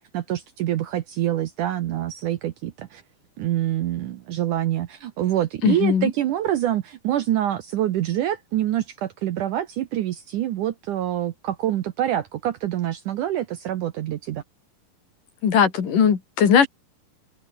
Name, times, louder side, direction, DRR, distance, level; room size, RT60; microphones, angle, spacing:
voice 1, 0.0-3.0 3.4-14.4, right 12 dB, 70° right, 2.1 m, -26 dB
voice 2, 5.6-6.1 15.4-16.7, left 7 dB, 55° left, 4.3 m, -18 dB
open air
omnidirectional pair, 4.6 m